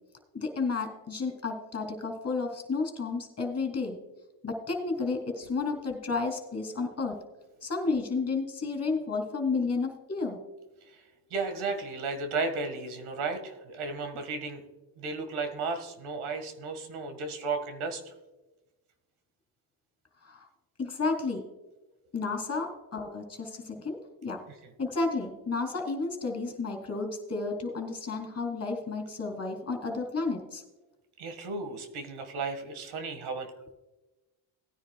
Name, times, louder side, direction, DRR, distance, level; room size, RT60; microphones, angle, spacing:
voice 1, 0.3-4.0 4.4-7.1 7.6-10.4 20.3-20.4 20.8-21.4 22.1-24.0 24.2-24.4 24.8-30.6, left 4 dB, 30° left, 3 dB, 3.1 m, -31 dB
voice 2, 11.3-14.6 15.0-18.1 24.5-24.6 31.2-33.7, right 4 dB, 75° right, 6 dB, 1.9 m, -34 dB
18.5 x 9.9 x 2.3 m, 1.1 s
supercardioid pair, 75°, 49 cm